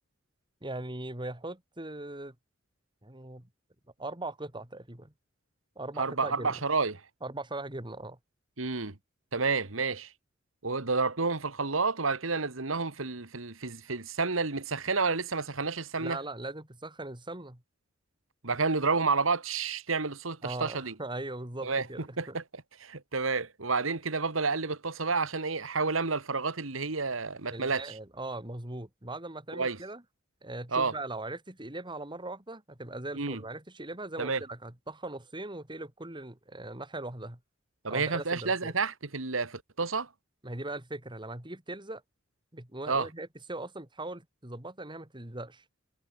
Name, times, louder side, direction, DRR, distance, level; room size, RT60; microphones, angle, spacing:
voice 1, 0.6-2.3 3.0-3.5 4.0-5.1 5.8-6.6 7.2-8.2 16.0-17.6 20.4-22.4 27.5-30.0 30.4-37.4 37.9-38.7 40.4-42.0 42.5-45.6, right 2 dB, 25° right, 2.9 m, -40 dB
voice 2, 6.0-7.0 8.6-9.0 9.3-10.1 10.6-16.2 18.4-20.9 21.6-21.9 22.2-22.4 22.8-27.9 29.5-29.8 30.7-30.9 33.1-33.4 34.2-34.4 37.8-40.1 42.9-43.1, right 4 dB, 90° right, 2.0 m, -30 dB
head